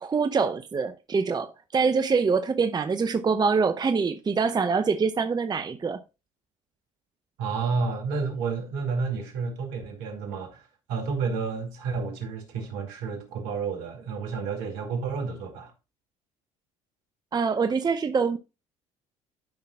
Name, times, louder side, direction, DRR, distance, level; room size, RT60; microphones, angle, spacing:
voice 1, 0.0-6.0 17.3-18.4, right 5 dB, 25° right, 0.7 m, -25 dB
voice 2, 7.4-15.7, right 5 dB, 70° right, 2.3 m, -30 dB
12.0 x 5.7 x 2.3 m
hypercardioid pair, 60°, 17 cm